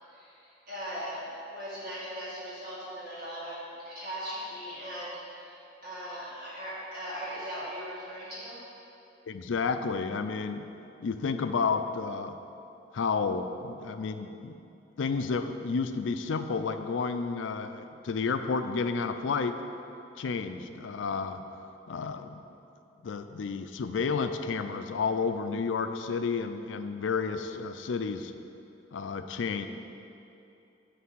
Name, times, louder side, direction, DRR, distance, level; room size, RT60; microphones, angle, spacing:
voice 1, 0.1-5.6 5.8-8.6, equal, 50° right, -10 dB, 1.9 m, -39 dB
voice 2, 9.3-10.7 11.0-12.4 12.9-14.6 15.0-19.6 20.2-21.4 21.9-22.4 23.0-28.3 28.9-29.7, left 5 dB, 90° left, 9 dB, 0.4 m, -31 dB
9.4 x 3.3 x 6.2 m, 2.8 s
head